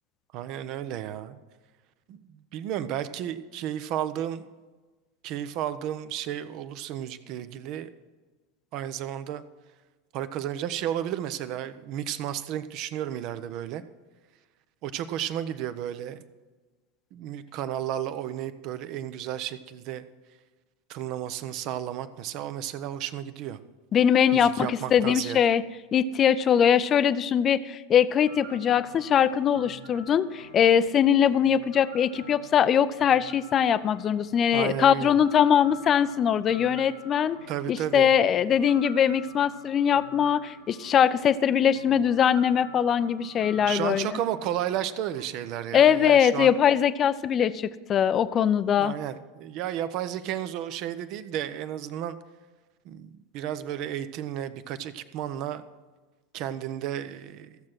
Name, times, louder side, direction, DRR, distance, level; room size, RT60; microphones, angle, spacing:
voice 1, 0.3-1.4 2.1-4.5 5.2-7.9 8.7-9.4 10.1-13.8 14.8-16.2 17.1-20.0 20.9-23.6 24.3-25.4 34.5-35.2 37.5-38.1 43.7-46.5 48.8-52.2 52.8-55.6 56.3-57.6, right 11 dB, 45° right, 12 dB, 0.8 m, -33 dB
voice 2, 23.9-25.6 25.9-37.4 37.7-44.2 45.7-48.9, left 8 dB, 30° left, 15 dB, 0.6 m, -22 dB
sound 1, 28.2-45.3, right 1 dB, 80° right, 1.7 m, -48 dB
15.0 x 7.4 x 6.2 m, 1.3 s
figure-of-eight pair, 85°, 0 cm